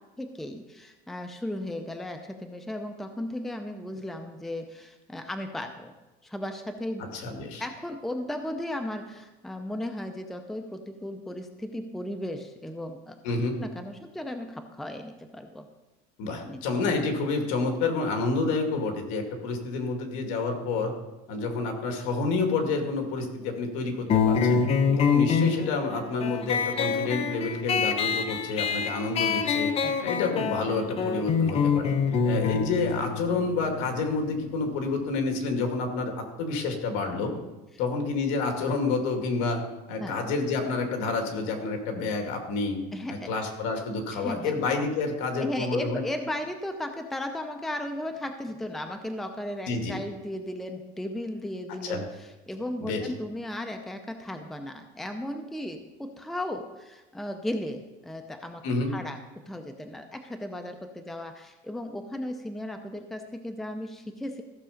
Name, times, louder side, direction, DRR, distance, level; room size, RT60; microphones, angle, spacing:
voice 1, 0.2-6.0 6.2-7.0 7.6-13.2 13.6-15.7 16.5-16.6 29.8-30.0 40.0-40.2 42.9-43.3 44.1-44.5 45.4-58.6 58.9-64.4, left 1 dB, ahead, 6 dB, 0.6 m, -35 dB
voice 2, 7.1-7.6 13.2-13.6 16.2-20.9 21.3-24.6 25.0-29.7 30.0-31.9 32.2-36.1 36.4-37.4 37.8-39.6 39.9-42.8 43.1-46.0 49.7-50.0 51.8-52.0 52.8-53.1 58.6-58.9, left 3 dB, 70° left, 4 dB, 2.3 m, -29 dB
sound 1, 24.1-35.2, left 6 dB, 30° left, 0.9 m, -26 dB
14.5 x 6.7 x 5.1 m, 1.1 s
cardioid pair, 150°, 20 cm